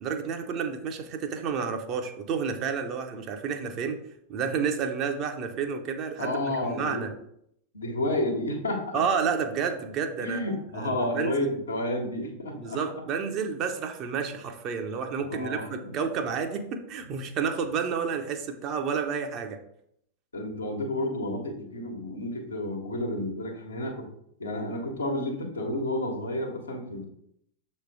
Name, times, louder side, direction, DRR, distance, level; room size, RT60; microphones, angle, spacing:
voice 1, 0.0-4.0 4.3-7.1 8.9-10.4 10.8-11.5 12.5-19.6, right 6 dB, 35° right, 6 dB, 0.8 m, -30 dB
voice 2, 6.2-7.1 7.7-9.0 10.2-12.8 15.2-15.9 20.3-24.1 24.4-27.0, left 1 dB, 75° left, 1 dB, 1.3 m, -31 dB
6.6 x 3.2 x 4.7 m, 0.72 s
figure-of-eight pair, 90°, 0 cm